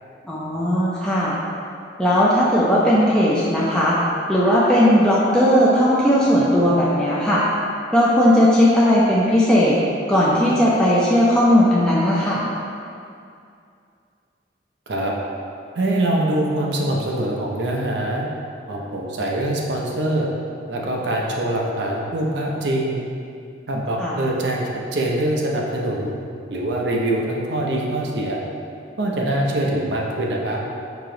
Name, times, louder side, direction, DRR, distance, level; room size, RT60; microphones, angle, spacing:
voice 1, 0.2-1.3 2.0-4.0 4.3-7.4 7.9-9.8 10.1-12.4 24.0-24.2, equal, 5° left, -8 dB, 0.4 m, -17 dB
voice 2, 15.7-18.3 18.7-20.3 20.7-23.0 23.7-26.1 26.5-28.4 29.0-30.6, right 1 dB, 70° right, -2 dB, 0.6 m, -23 dB
4.9 x 2.9 x 3.8 m, 2.4 s
head